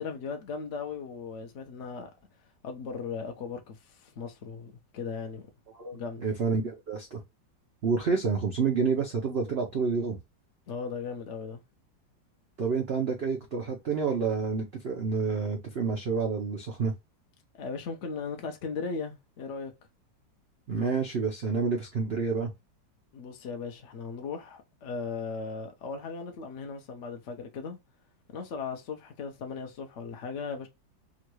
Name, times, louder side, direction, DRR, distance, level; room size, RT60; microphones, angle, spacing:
voice 1, 0.0-2.1 2.6-5.5 5.9-6.2 10.7-11.6 17.6-19.7 23.1-27.8 28.3-30.7, left 5 dB, 70° left, 0.7 m, -37 dB
voice 2, 5.7-7.2 7.8-10.2 12.6-16.9 20.7-22.5, right 5 dB, 85° right, 0.5 m, -29 dB
3.8 x 2.2 x 3.0 m
omnidirectional pair, 2.0 m